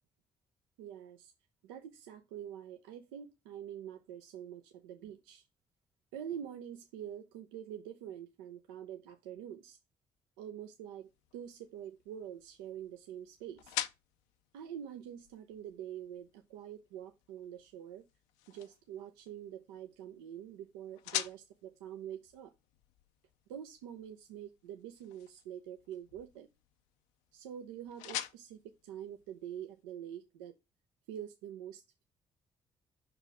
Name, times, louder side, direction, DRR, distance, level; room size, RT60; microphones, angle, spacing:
voice 1, 0.8-1.3 1.6-5.4 6.1-9.8 10.4-13.8 14.5-18.0 18.5-22.5 23.5-26.5 27.3-30.5 31.1-32.0, right 10 dB, 85° right, 0.5 m, -46 dB
sound 1, 11.0-29.9, left 12 dB, 80° left, 0.4 m, -47 dB
5.5 x 4.0 x 4.6 m
hypercardioid pair, 50°, 12 cm